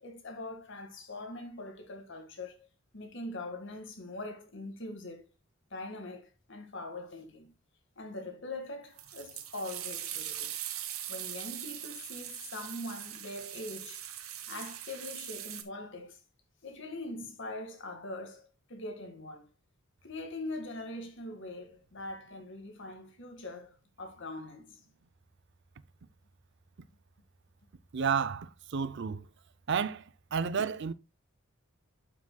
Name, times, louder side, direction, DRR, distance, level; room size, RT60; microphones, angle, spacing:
voice 1, 0.0-2.7 2.9-5.3 5.7-7.5 8.0-10.5 11.1-14.1 14.5-16.2 16.6-19.5 20.0-24.8, left 2 dB, 60° left, 1.8 m, -42 dB
sound 1, 9.0-15.6, right 11 dB, 90° right, 1.3 m, -41 dB
voice 2, 27.9-29.2 29.7-30.0 30.3-30.9, right 6 dB, 55° right, 0.5 m, -31 dB
11.5 x 6.0 x 2.2 m
head